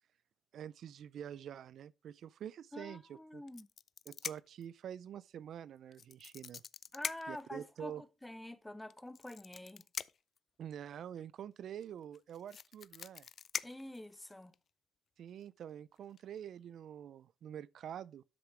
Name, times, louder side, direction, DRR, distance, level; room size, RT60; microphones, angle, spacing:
voice 1, 0.5-3.4 4.1-6.6 7.3-8.0 10.6-13.3 15.2-18.2, right 9 dB, 70° right, 0.4 m, -47 dB
voice 2, 2.7-3.7 6.9-9.8 13.6-14.5, left 1 dB, 10° left, 1.2 m, -47 dB
sound 1, 3.5-4.6 5.9-7.5 8.9-10.4 11.8-11.9 12.1-14.5 15.4-15.6 16.0-16.2, left 7 dB, 55° left, 0.4 m, -43 dB
12.0 x 6.7 x 3.3 m
cardioid pair, 90°, 0 cm